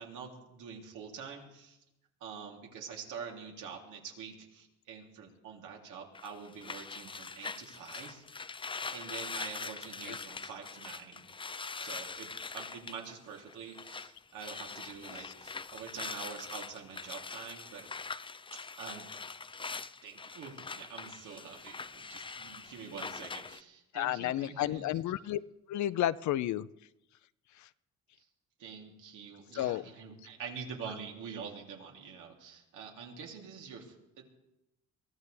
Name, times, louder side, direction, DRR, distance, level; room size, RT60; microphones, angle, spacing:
voice 1, 0.0-1.8 2.2-8.2 8.9-11.2 11.8-18.1 18.5-19.3 20.0-24.9 28.2-28.3 28.6-34.2, right 6 dB, 85° right, 0 dB, 3.3 m, -46 dB
sound 1, 6.1-14.1 14.4-23.6, left 4 dB, 15° left, 0.5 m, -43 dB
voice 2, 23.9-25.4 25.7-26.7 27.6-27.7 29.5-29.8, left 13 dB, 70° left, 17 dB, 0.6 m, -31 dB
23.0 x 15.0 x 3.5 m, 0.90 s
cardioid pair, 90°, 30 cm